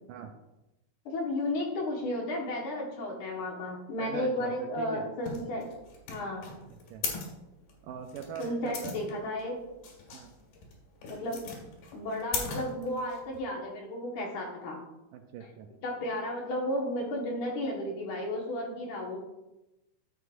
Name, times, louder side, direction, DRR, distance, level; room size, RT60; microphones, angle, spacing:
voice 1, 1.1-5.7 6.1-6.5 8.4-9.6 11.0-11.4 11.9-14.8 15.8-19.2, left 1 dB, 65° left, -2 dB, 2.7 m, -33 dB
voice 2, 4.0-5.0 6.7-7.0 7.8-9.1 10.1-10.3 15.1-15.7, right 7 dB, 80° right, 5 dB, 2.1 m, -42 dB
sound 1, 5.2-13.4, left 5 dB, 85° left, 3.6 m, -39 dB
11.0 x 7.8 x 2.5 m, 0.96 s
omnidirectional pair, 4.1 m